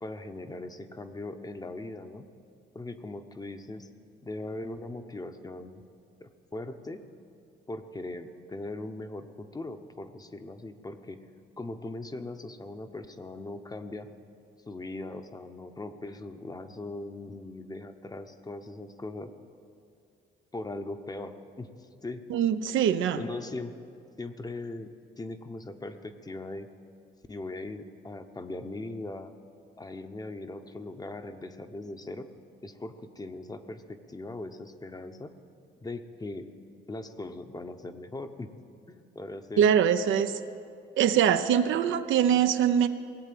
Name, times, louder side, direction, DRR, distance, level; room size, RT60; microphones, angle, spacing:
voice 1, 0.0-2.2 2.7-3.9 4.2-5.8 6.2-7.0 7.7-11.2 11.6-14.1 14.7-19.3 20.5-22.2 23.1-23.7 24.2-24.9 25.2-26.7 27.3-29.3 29.8-32.3 32.6-35.4 35.8-36.5 36.9-38.5 38.9-39.7, left 2 dB, 20° left, 8 dB, 0.8 m, -39 dB
voice 2, 22.3-23.2 39.6-40.4 41.0-42.9, right 9 dB, 75° right, 9 dB, 0.7 m, -23 dB
18.5 x 7.9 x 7.7 m, 2.5 s
cardioid pair, 90°, 20 cm